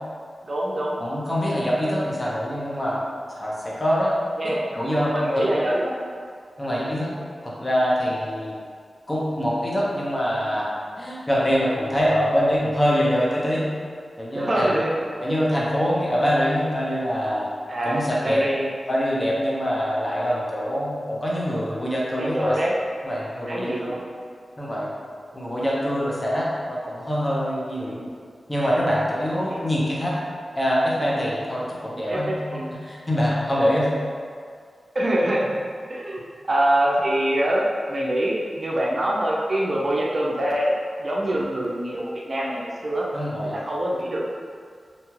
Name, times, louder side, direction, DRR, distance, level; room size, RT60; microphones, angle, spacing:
voice 1, 0.4-1.0 4.4-4.7 5.1-6.1 14.3-14.9 17.7-18.7 22.1-22.8 23.5-24.0 27.8-28.1 29.5-29.6 32.1-32.7 34.9-35.6 35.9-43.1 43.5-44.2, right 1 dB, 50° right, -3 dB, 0.4 m, -24 dB
voice 2, 1.0-3.0 3.4-4.1 4.4-5.4 6.6-7.1 7.4-8.5 9.1-10.7 11.0-13.7 14.2-14.7 15.2-17.5 17.8-18.4 18.9-22.5 23.0-24.0 24.6-24.9 25.3-27.9 28.5-30.1 30.6-32.3 32.8-33.9 43.1-43.5, equal, 25° left, -6 dB, 0.7 m, -24 dB
2.7 x 2.2 x 3.1 m, 2.1 s
cardioid pair, 60°, 0 cm